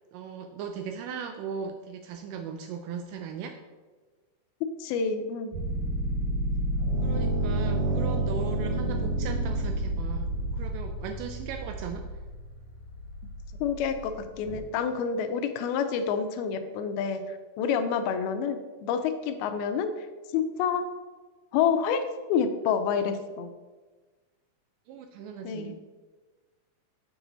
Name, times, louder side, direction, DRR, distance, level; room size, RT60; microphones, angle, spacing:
voice 1, 0.1-3.6 7.0-12.1 24.9-25.7, right 6 dB, 85° right, 5 dB, 1.9 m, -38 dB
voice 2, 4.8-5.6 13.6-14.1 14.4-20.8 21.5-22.0 22.3-23.5 25.4-25.7, left 6 dB, 85° left, 8 dB, 2.5 m, -28 dB
sound 1, 5.5-14.6, right 1 dB, 60° right, 2.6 m, -30 dB
7.0 x 6.1 x 3.9 m, 1.3 s
omnidirectional pair, 4.3 m